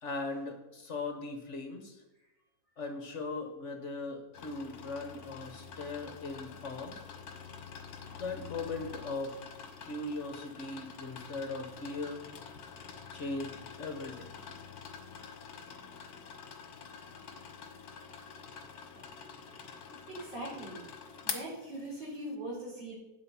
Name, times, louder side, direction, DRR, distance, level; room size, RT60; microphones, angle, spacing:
voice 1, 0.0-2.0 2.8-6.9 8.1-9.4 9.8-12.2 13.1-14.4 19.9-20.0, left 3 dB, 45° left, 5 dB, 1.4 m, -39 dB
sound 1, 4.3-22.3, left 6 dB, 60° left, 1.5 m, -47 dB
voice 2, 20.1-20.8 21.2-22.9, right 1 dB, 90° right, -6 dB, 5.4 m, -41 dB
8.7 x 7.9 x 5.7 m, 0.98 s
omnidirectional pair, 1.9 m